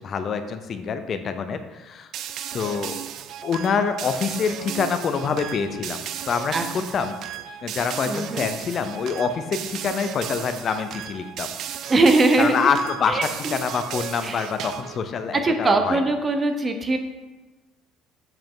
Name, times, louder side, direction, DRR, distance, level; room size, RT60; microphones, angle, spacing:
voice 1, 0.0-2.1 2.5-3.0 3.4-7.1 7.6-11.5 12.4-13.2 13.5-16.0, left 6 dB, 45° left, 9 dB, 0.6 m, -26 dB
sound 1, 2.1-15.0, right 10 dB, 60° right, 0.4 m, -35 dB
voice 2, 8.1-8.5 11.9-12.7 13.1-13.6 14.2-14.5 15.3-17.0, right 2 dB, 30° right, 6 dB, 0.8 m, -21 dB
7.7 x 4.8 x 3.8 m, 1.2 s
supercardioid pair, 95°, 0 cm